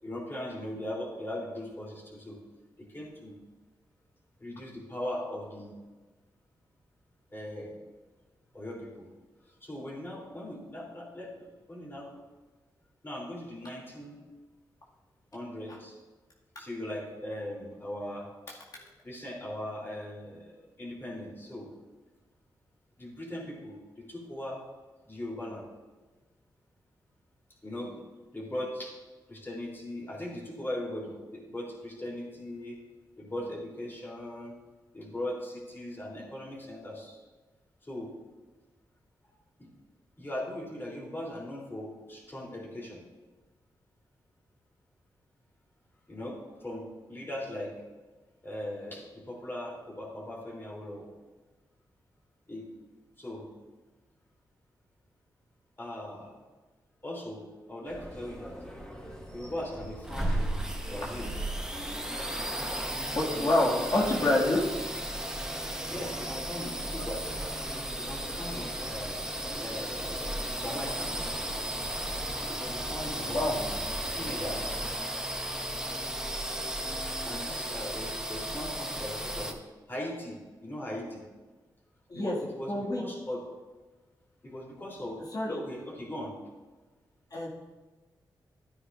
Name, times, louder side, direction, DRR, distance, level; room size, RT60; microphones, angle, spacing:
voice 1, 0.0-2.4 2.8-3.3 4.4-5.8 7.3-7.8 8.5-9.1 9.6-12.1 13.0-14.2 15.3-16.0 16.6-18.6 19.0-21.7 23.0-24.6 25.1-25.6 27.6-28.0 28.3-29.0 29.3-32.8 33.2-34.5 34.9-37.2 37.8-38.1 39.6-39.7 40.2-43.0 46.1-47.7 48.4-51.1 52.5-52.7 53.2-53.5 55.8-56.4 57.0-58.6 59.3-61.3 63.3-64.3 65.9-67.2 67.9-69.2 69.6-71.1 72.5-73.6 74.1-74.7 77.2-79.6 79.9-81.2 82.1-83.4 84.4-85.2 85.5-86.3, left 1 dB, 25° left, -3 dB, 3.4 m, -39 dB
sound 1, 57.8-74.9, right 1 dB, 5° left, 2.0 m, -40 dB
sound 2, 60.0-79.5, right 1 dB, 10° right, 1.0 m, -35 dB
voice 2, 63.2-64.6 73.3-73.5 82.1-82.4 82.7-83.0 85.3-85.6 87.3-87.5, left 1 dB, 50° left, -5 dB, 2.1 m, -26 dB
12.0 x 9.3 x 2.6 m, 1.3 s
cardioid pair, 60°, 8 cm